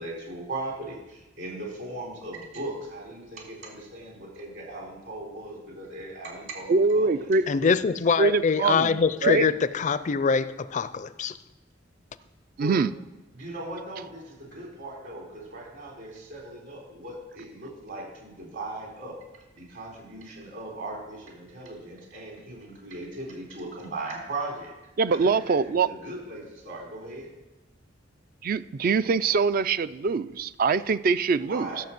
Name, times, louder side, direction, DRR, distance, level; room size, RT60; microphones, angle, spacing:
voice 1, 0.0-7.3 12.6-12.8 13.3-19.2 19.6-24.7 25.1-27.3 31.4-31.8, right 2 dB, 65° right, -2 dB, 4.1 m, -38 dB
voice 2, 6.7-7.5 8.2-9.5 12.6-12.9 25.0-25.9 28.4-31.7, right 4 dB, 50° right, 14 dB, 0.4 m, -23 dB
voice 3, 7.5-11.4, left 5 dB, 40° left, 15 dB, 0.4 m, -24 dB
12.0 x 7.2 x 6.0 m, 1.0 s
head